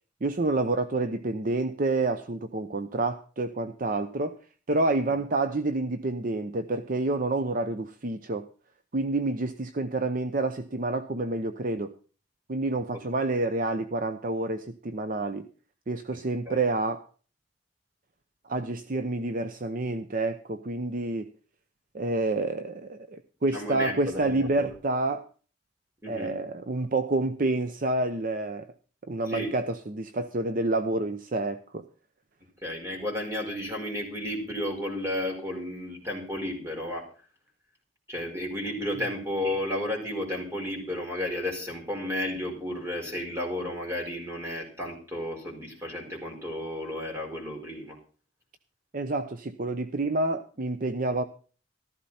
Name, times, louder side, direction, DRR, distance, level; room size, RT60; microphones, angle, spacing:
voice 1, 0.2-4.4 4.7-8.5 8.9-11.9 12.5-15.5 15.9-17.0 18.4-21.3 21.9-25.3 26.1-28.7 29.1-31.8 48.9-51.2, right 2 dB, 45° right, 9 dB, 0.7 m, -28 dB
voice 2, 23.5-24.7 26.0-26.3 29.3-29.5 32.6-37.0 38.1-48.0, left 1 dB, 15° right, 1 dB, 4.8 m, -33 dB
14.5 x 13.5 x 4.3 m, 0.40 s
head